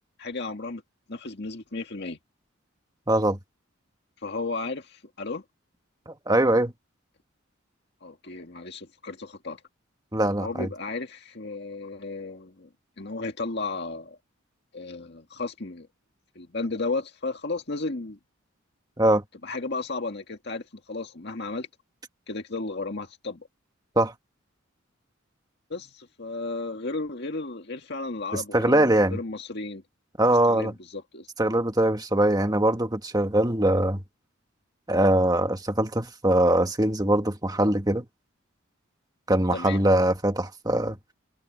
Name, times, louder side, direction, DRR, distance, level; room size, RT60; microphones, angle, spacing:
voice 1, 0.2-0.8 1.1-2.2 4.2-5.4 8.0-9.6 10.4-12.7 13.0-14.2 14.7-15.9 16.4-18.2 19.4-21.7 22.3-23.5 25.7-29.8 30.4-31.3 39.5-39.8, left 3 dB, 55° left, 2.0 m, -34 dB
voice 2, 3.1-3.4 6.1-6.7 10.1-10.7 19.0-19.2 24.0-24.1 28.3-29.2 30.2-30.7 31.4-34.0 34.9-38.0 39.3-41.0, right 1 dB, 20° right, 1.7 m, -22 dB
head